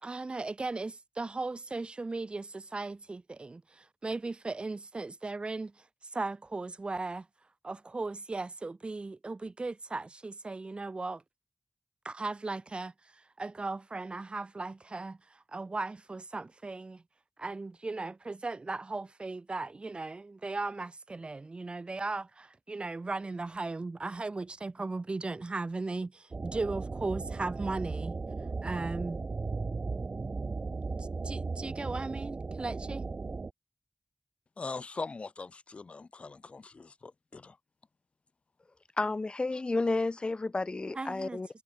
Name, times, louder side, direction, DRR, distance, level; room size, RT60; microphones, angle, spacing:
voice 1, 0.0-5.8 6.1-7.3 7.6-11.2 12.0-17.0 17.4-28.2 28.6-29.2 31.0-33.1 40.9-41.4, right 3 dB, 60° right, 3.9 m, -37 dB
sound 1, 26.3-33.5, right 4 dB, 75° right, 4.5 m, -36 dB
voice 2, 34.6-37.6, left 4 dB, 80° left, 2.2 m, -41 dB
voice 3, 39.0-41.5, left 3 dB, 55° left, 1.6 m, -31 dB
wide cardioid pair, 60°, 2 cm